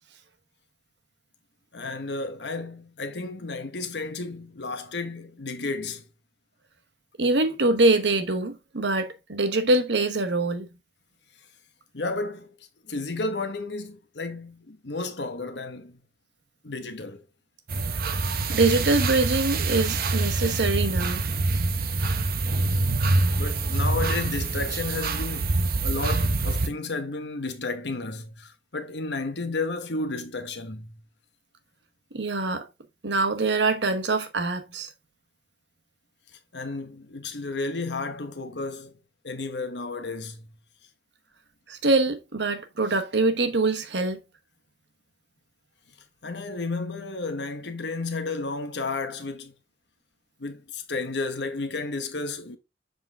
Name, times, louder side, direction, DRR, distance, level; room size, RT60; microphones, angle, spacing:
voice 1, 1.7-6.0 11.9-12.5 12.8-16.0 16.6-17.2 23.3-31.0 36.5-38.9 39.2-40.5 46.2-49.5 50.4-52.6, left 3 dB, 75° left, 1.1 m, -32 dB
voice 2, 7.2-10.7 18.5-21.2 32.1-32.7 33.0-34.9 41.7-44.2, right 2 dB, 80° right, 1.1 m, -24 dB
sound 1, 17.7-26.7, right 3 dB, 60° right, 0.8 m, -25 dB
7.2 x 3.8 x 3.5 m
head